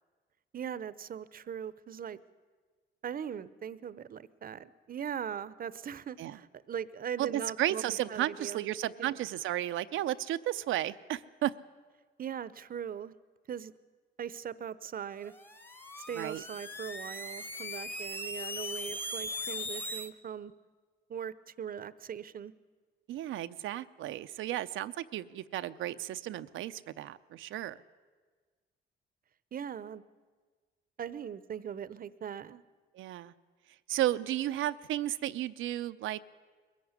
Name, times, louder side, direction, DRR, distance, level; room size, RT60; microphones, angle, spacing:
voice 1, 0.5-2.2 3.0-7.8 8.1-8.6 9.0-9.2 12.2-13.1 13.5-13.7 14.2-15.3 16.0-20.5 21.1-22.5 29.5-30.0 31.0-32.6, right 8 dB, 45° right, 17 dB, 0.8 m, -40 dB
voice 2, 7.2-11.6 16.1-16.4 23.1-27.8 32.9-33.3 33.9-36.2, right 13 dB, 80° right, 12 dB, 0.7 m, -33 dB
sound 1, 15.3-20.1, left 1 dB, 10° left, 1.2 m, -39 dB
21.5 x 14.5 x 9.7 m, 1.5 s
cardioid pair, 90°, 20 cm